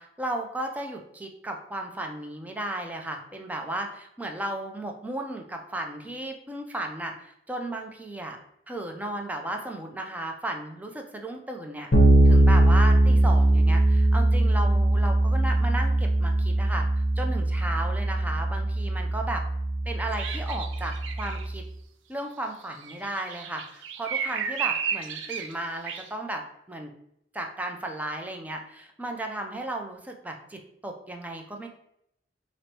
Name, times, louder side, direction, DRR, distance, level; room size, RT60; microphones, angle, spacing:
voice 1, 0.0-8.4 8.7-11.9 12.2-16.9 17.2-19.4 19.9-21.6 22.1-26.4 26.7-26.9 27.3-31.7, right 1 dB, 10° right, 3 dB, 0.4 m, -34 dB
Bass guitar, 11.9-21.6, right 1 dB, 50° left, 0.7 m, -21 dB
sound 1, 20.1-21.4 22.8-25.5 25.9-26.1, right 7 dB, 90° right, 0.4 m, -33 dB
4.6 x 2.0 x 2.8 m, 0.76 s
head